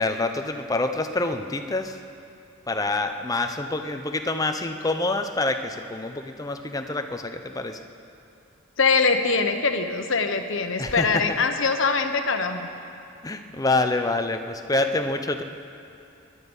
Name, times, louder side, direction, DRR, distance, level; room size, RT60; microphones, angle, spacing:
voice 1, 0.0-2.0 2.7-7.8 10.8-11.2 13.2-15.4, left 2 dB, 15° left, 6 dB, 0.7 m, -26 dB
voice 2, 8.8-12.7, left 4 dB, 60° left, 7 dB, 1.0 m, -23 dB
21.0 x 11.5 x 5.5 m, 2.6 s
head